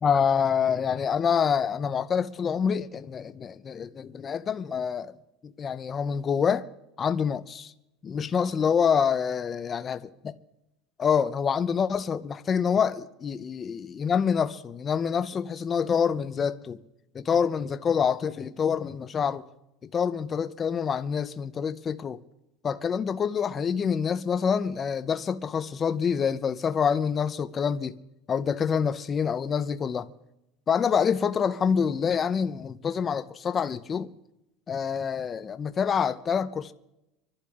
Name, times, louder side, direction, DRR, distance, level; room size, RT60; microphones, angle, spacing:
voice 1, 0.0-5.1 5.6-6.6 7.0-7.7 8.0-10.0 10.2-10.4 11.0-16.8 17.1-19.4 19.8-22.2 22.6-28.0 28.3-30.1 30.7-34.1 34.7-36.7, left 7 dB, 20° left, 0.5 m, -26 dB
26.0 x 11.5 x 3.6 m
cardioid pair, 170°, 0 cm